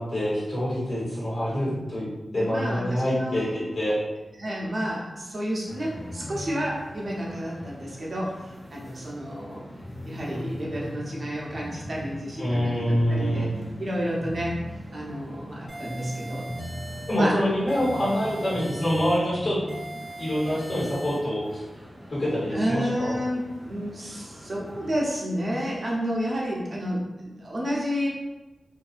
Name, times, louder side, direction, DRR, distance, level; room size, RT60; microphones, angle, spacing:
voice 1, 0.0-2.0 2.3-4.0 12.4-13.5 17.1-19.6 20.2-21.6 22.1-23.1, equal, 55° left, -8 dB, 1.3 m, -26 dB
voice 2, 1.4-1.9 2.2-3.5 4.4-9.7 10.0-13.5 13.8-14.6 14.9-16.5 17.1-17.4 22.5-28.1, equal, 40° right, -4 dB, 0.7 m, -30 dB
sound 1, 5.7-25.0, equal, 5° right, 0.7 m, -40 dB
sound 2, 15.7-17.3 17.7-19.3 19.7-21.3, right 1 dB, 40° left, 1.4 m, -40 dB
2.6 x 2.4 x 2.5 m, 1.1 s
wide cardioid pair, 110°, 0 cm